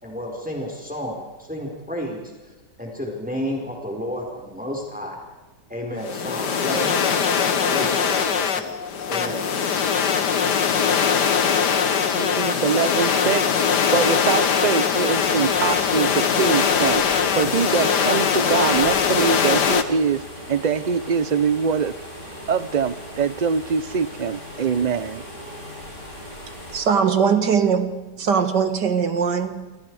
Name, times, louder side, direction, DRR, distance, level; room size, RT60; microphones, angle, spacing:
voice 1, 0.0-2.5 2.8-5.2 5.7-7.0 7.7-8.7 9.1-9.4, equal, 5° right, 0 dB, 4.6 m, -31 dB
sound 1, 6.0-19.8, left 6 dB, 70° left, 2.0 m, -21 dB
voice 2, 12.1-13.5 13.9-20.2 20.5-22.0 22.5-25.2, right 6 dB, 55° right, 15 dB, 0.4 m, -23 dB
sound 2, 15.1-26.8, equal, 40° left, 7.8 m, -39 dB
voice 3, 26.7-29.8, right 6 dB, 75° right, 8 dB, 2.5 m, -21 dB
28.5 x 26.0 x 4.9 m, 1.2 s
omnidirectional pair, 1.9 m